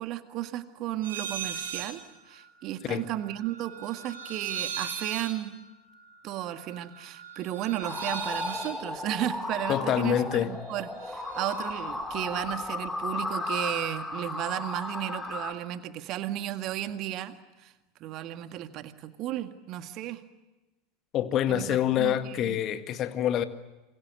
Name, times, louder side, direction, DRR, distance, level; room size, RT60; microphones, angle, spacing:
voice 1, 0.0-2.0 2.3-5.6 6.2-17.7 18.0-20.2 21.5-22.6, right 13 dB, 45° right, 1.8 m, -34 dB
sound 1, 1.0-2.0 2.3-10.5 10.8-11.8, right 7 dB, 70° right, 6.5 m, -40 dB
sound 2, 7.8-15.5, left 2 dB, 10° left, 3.2 m, -35 dB
voice 2, 9.7-10.5 21.1-23.4, left 11 dB, 40° left, 1.8 m, -26 dB
27.5 x 22.5 x 8.0 m
figure-of-eight pair, 80°, 0 cm